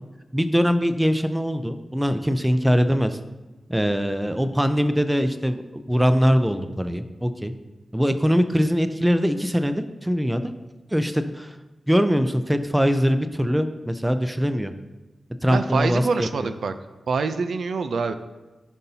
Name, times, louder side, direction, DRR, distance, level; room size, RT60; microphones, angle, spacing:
voice 1, 0.3-3.2 3.7-7.5 7.9-10.4 10.9-11.6 11.9-14.7 15.4-16.5, equal, 5° right, 9 dB, 0.5 m, -22 dB
voice 2, 15.5-16.7 17.1-18.1, right 4 dB, 80° right, 10 dB, 0.5 m, -25 dB
15.0 x 5.4 x 2.8 m, 1.1 s
wide cardioid pair, 140°, 0 cm